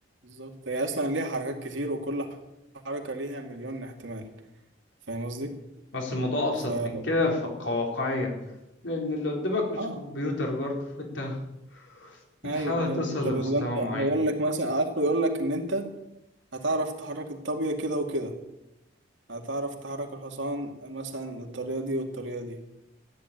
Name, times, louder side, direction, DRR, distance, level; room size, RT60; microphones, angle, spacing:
voice 1, 0.2-2.3 2.8-4.3 5.1-5.5 6.7-7.0 9.8-10.0 12.4-15.9 16.5-18.3 19.3-22.6, right 1 dB, 70° right, 3 dB, 2.4 m, -30 dB
voice 2, 5.9-8.3 8.8-11.4 11.7-12.2 12.5-14.1, left 2 dB, 65° left, 0 dB, 4.1 m, -29 dB
14.0 x 10.0 x 9.1 m, 0.92 s
head